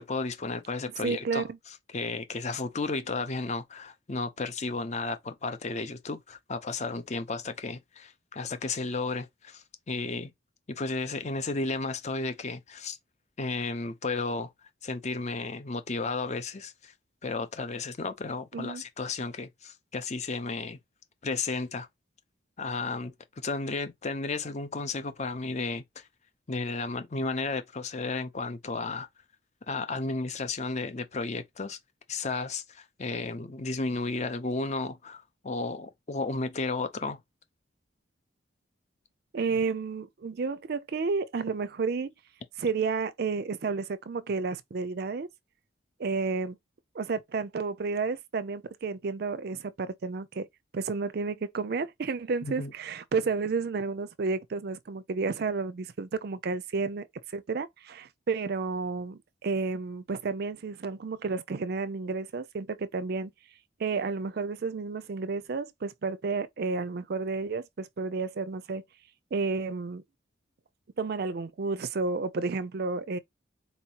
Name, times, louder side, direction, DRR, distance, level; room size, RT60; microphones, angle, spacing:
voice 1, 0.0-10.3 10.7-13.0 13.4-14.5 14.8-16.9 17.2-20.8 21.2-21.9 22.6-26.1 26.5-29.1 29.7-31.8 32.1-37.2 52.4-52.7, left 3 dB, 35° left, 0.6 m, -33 dB
voice 2, 1.0-1.6 18.5-18.8 39.3-42.1 42.6-45.3 46.0-46.6 46.9-50.5 50.7-57.1 57.3-63.3 63.8-68.8 69.3-70.0 71.0-73.2, right 4 dB, 55° right, 0.4 m, -31 dB
4.1 x 2.9 x 2.8 m
head